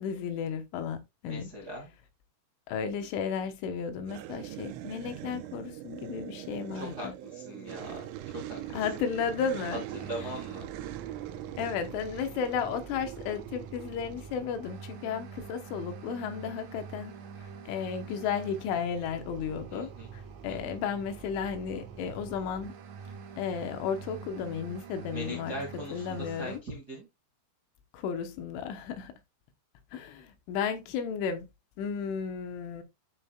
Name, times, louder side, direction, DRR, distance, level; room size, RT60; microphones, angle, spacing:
voice 1, 0.0-1.5 2.7-7.1 8.7-9.8 11.6-17.1 17.7-22.7 23.4-25.6 25.9-26.6 27.9-29.1 29.9-31.5 31.8-32.8, left 7 dB, 80° left, 3.4 m, -34 dB
voice 2, 1.2-1.9 6.7-8.8 9.9-10.7 19.7-20.1 20.4-20.8 25.1-27.1, equal, 45° right, 1.3 m, -41 dB
sound 1, 4.0-14.4, right 13 dB, 85° right, 3.3 m, -42 dB
sound 2, 9.9-26.6, right 6 dB, 65° right, 3.4 m, -46 dB
12.0 x 5.4 x 2.3 m
omnidirectional pair, 5.8 m